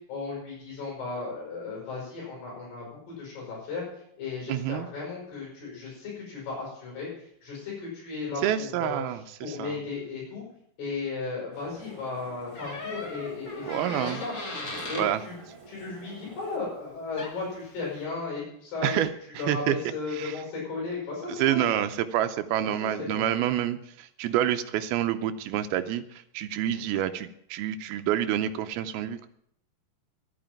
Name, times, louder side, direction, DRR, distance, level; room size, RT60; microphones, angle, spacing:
voice 1, 0.1-3.8 4.2-9.0 9.4-10.4 10.8-14.3 14.9-15.4 15.7-19.0 19.4-21.8 22.6-22.7 23.0-23.4, left 4 dB, 70° left, -4 dB, 8.2 m, -35 dB
voice 2, 4.5-4.9 8.4-9.8 13.6-14.2 15.0-15.2 18.8-19.1 19.4-19.8 20.1-20.4 21.3-29.3, right 11 dB, 80° right, 9 dB, 2.3 m, -28 dB
sound 1, 11.5-16.6, right 2 dB, 15° right, 1.3 m, -49 dB
Door, 12.5-15.1 16.9-17.0 17.2-17.5, left 2 dB, 35° left, 1.4 m, -37 dB
12.0 x 9.1 x 8.9 m, 0.71 s
omnidirectional pair, 5.0 m